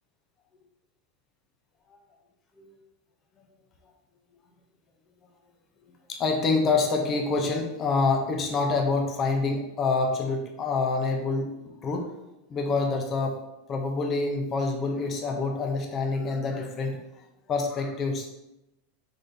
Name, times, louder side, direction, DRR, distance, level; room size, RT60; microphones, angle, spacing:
voice 1, 6.1-11.5 11.8-12.1 12.5-13.4 13.7-17.0 17.5-18.3, left 3 dB, 30° left, 2 dB, 0.7 m, -26 dB
4.0 x 3.7 x 3.4 m, 0.90 s
supercardioid pair, 140°, 0 cm